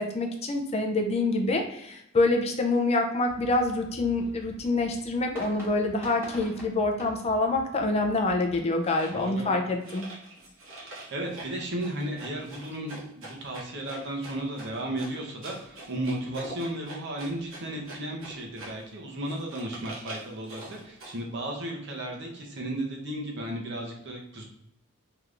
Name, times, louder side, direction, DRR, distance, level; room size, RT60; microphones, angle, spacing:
voice 1, 0.0-10.0, left 2 dB, 30° left, 3 dB, 0.4 m, -26 dB
sound 1, 3.3-8.6, equal, 15° right, 1.3 m, -46 dB
sound 2, 8.8-9.3 9.8-18.9 19.3-21.2, right 2 dB, 75° right, 1.0 m, -44 dB
voice 2, 9.1-9.6 10.8-24.4, right 1 dB, 60° right, 0 dB, 0.8 m, -34 dB
3.3 x 2.9 x 2.5 m, 0.77 s
head